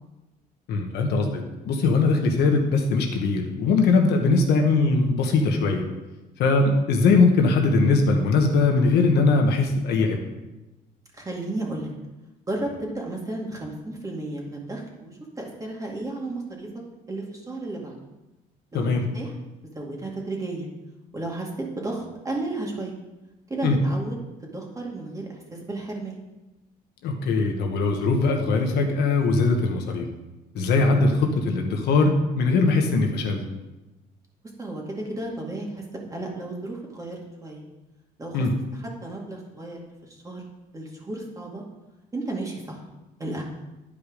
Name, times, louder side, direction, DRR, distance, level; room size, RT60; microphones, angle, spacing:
voice 1, 0.7-5.8 6.4-10.2 18.7-19.1 23.6-23.8 27.0-30.1 30.5-33.4 38.3-38.5, left 3 dB, 75° left, 3 dB, 1.3 m, -21 dB
voice 2, 4.1-4.5 6.9-7.0 11.1-11.9 12.5-16.7 17.1-18.0 18.7-19.3 19.8-20.7 21.1-22.9 23.5-26.2 30.9-31.0 34.6-37.6 38.2-38.5 38.7-40.4 40.7-41.6 42.1-42.8 43.2-43.4, right 2 dB, 20° right, -1 dB, 2.1 m, -33 dB
10.5 x 5.2 x 5.0 m, 1.0 s
cardioid pair, 110°, 17 cm